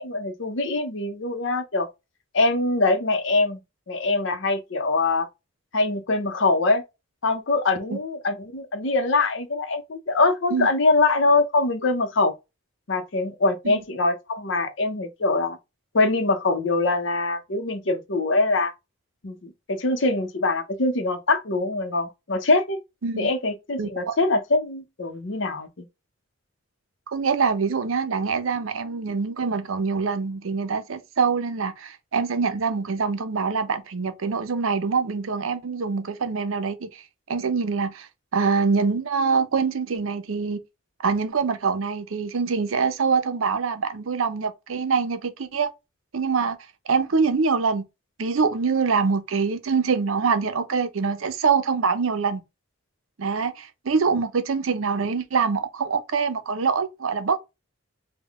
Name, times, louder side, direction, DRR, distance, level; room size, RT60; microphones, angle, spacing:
voice 1, 0.0-1.9 2.3-3.6 3.9-5.3 5.7-6.8 7.2-12.3 12.9-15.6 15.9-18.7 19.2-22.8 23.2-25.7, left 3 dB, 65° left, 0.7 m, -23 dB
voice 2, 23.8-24.2 27.1-37.0 37.3-40.6 41.0-45.7 46.1-46.6 46.9-47.8 48.2-52.4 53.2-57.4, right 5 dB, 80° right, 0.6 m, -24 dB
3.6 x 2.2 x 3.4 m
head